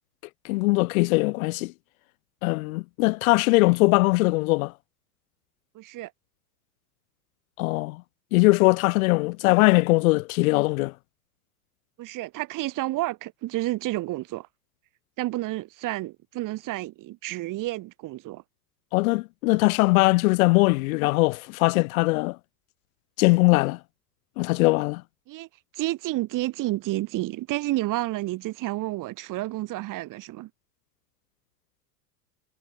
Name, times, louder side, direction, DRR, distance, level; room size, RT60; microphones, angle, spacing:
voice 1, 0.4-1.7 2.4-4.7 7.6-8.0 8.3-10.9 18.9-22.4 23.2-23.8 24.4-25.0, left 24 dB, 60° left, 0.5 m, -21 dB
voice 2, 5.7-6.1 12.0-14.5 15.2-18.4 25.3-25.5 25.7-30.5, right 18 dB, 40° right, 3.5 m, -30 dB
supercardioid pair, 130°, 48 cm